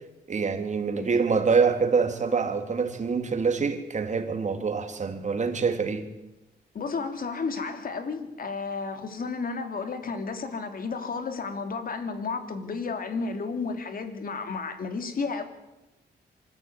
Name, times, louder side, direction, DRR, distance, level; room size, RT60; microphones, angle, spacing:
voice 1, 0.3-6.1, right 5 dB, 40° right, 3.0 m, -25 dB
voice 2, 6.7-15.4, left 4 dB, 55° left, 3.1 m, -32 dB
25.0 x 14.0 x 9.5 m
cardioid pair, 100°, 18 cm